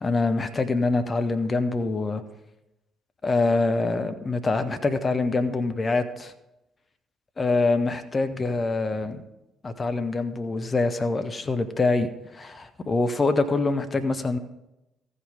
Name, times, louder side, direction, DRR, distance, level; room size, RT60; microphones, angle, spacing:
voice 1, 0.0-2.2 3.2-6.3 7.4-9.2 9.6-14.4, left 3 dB, 35° left, 10 dB, 1.0 m, -25 dB
14.5 x 5.5 x 5.1 m, 0.92 s
hypercardioid pair, 45°, 0 cm